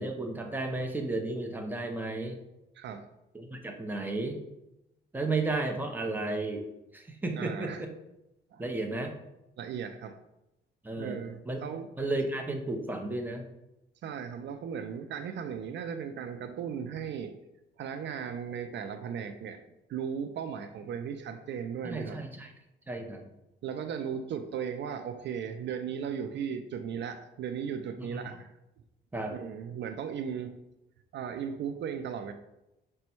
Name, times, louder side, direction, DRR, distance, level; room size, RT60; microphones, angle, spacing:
voice 1, 0.0-2.4 3.3-4.4 5.1-6.7 6.9-7.9 8.6-9.1 10.8-11.2 11.5-11.6 12.0-13.4 21.8-22.5 22.9-23.2 28.0-28.3 29.1-29.4, right 2 dB, 10° right, 3 dB, 0.7 m, -33 dB
voice 2, 2.8-3.1 7.4-7.8 8.5-8.6 9.6-10.2 11.0-11.9 14.0-17.3 17.8-19.6 19.9-22.2 23.6-28.5 29.3-30.5 31.1-32.3, right 7 dB, 65° right, 7 dB, 0.4 m, -36 dB
5.1 x 2.2 x 4.4 m, 0.90 s
cardioid pair, 90°, 20 cm